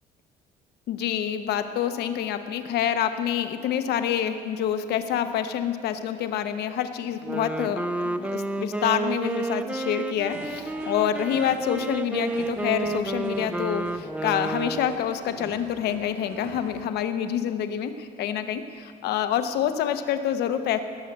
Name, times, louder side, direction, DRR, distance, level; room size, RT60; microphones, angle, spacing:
voice 1, 0.9-20.8, left 9 dB, 75° left, 9 dB, 0.9 m, -27 dB
Wind instrument woodwind instrument, 7.1-15.1, right 2 dB, 5° right, 0.5 m, -30 dB
sound 1, 10.1-16.8, right 4 dB, 85° right, 1.7 m, -44 dB
17.5 x 6.6 x 8.0 m, 2.2 s
cardioid pair, 110°, 17 cm